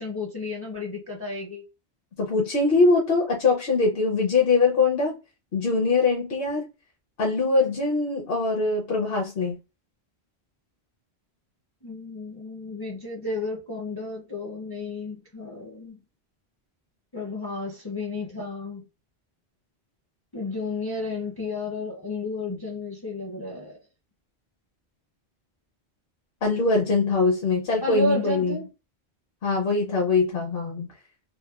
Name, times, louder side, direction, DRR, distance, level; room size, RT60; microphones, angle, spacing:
voice 1, 0.0-1.6 11.8-16.0 17.1-18.8 20.3-23.8 27.8-28.7, left 2 dB, 30° left, 0.4 m, -32 dB
voice 2, 2.2-5.2 5.5-6.7 7.2-9.6 26.4-28.6 29.4-30.9, left 3 dB, 60° left, 0.8 m, -22 dB
2.8 x 2.1 x 2.3 m
omnidirectional pair, 1.1 m